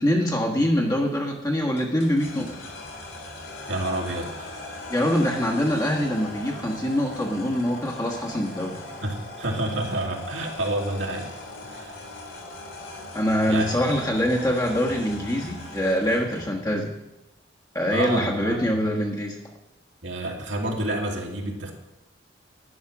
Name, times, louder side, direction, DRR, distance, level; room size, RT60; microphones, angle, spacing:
voice 1, 0.0-2.6 4.9-8.8 13.1-16.9 17.7-19.4, equal, 20° left, -2 dB, 1.4 m, -24 dB
sound 1, 1.8-16.6, left 2 dB, 85° left, 3.3 m, -39 dB
voice 2, 3.6-4.8 8.7-11.3 11.6-12.0 13.5-14.0 17.9-18.8 20.0-21.7, right 1 dB, 70° right, 1 dB, 2.5 m, -29 dB
11.5 x 10.0 x 6.1 m, 0.92 s
head